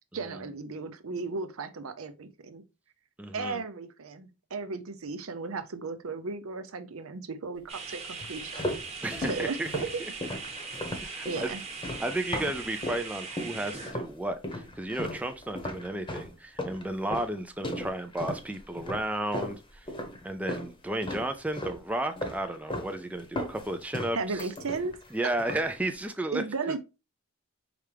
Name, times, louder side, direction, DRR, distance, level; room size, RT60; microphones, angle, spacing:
voice 1, 0.1-2.6 3.3-8.7 9.3-10.0 11.3-11.6 24.1-25.0 26.3-26.8, right 4 dB, 80° right, 0.6 m, -35 dB
voice 2, 3.2-3.6 9.0-9.7 10.0-10.1 11.0-11.5 12.0-19.9 20.2-24.5 25.1-26.8, right 1 dB, 5° right, 0.4 m, -33 dB
sound 1, 7.7-13.9, right 4 dB, 30° right, 1.2 m, -40 dB
sound 2, 8.2-13.1 13.4-14.1 14.4-20.7 21.0-21.8 22.2-22.9 23.2-25.1 25.4-25.8, left 1 dB, 25° left, 0.9 m, -36 dB
4.9 x 3.3 x 3.3 m
head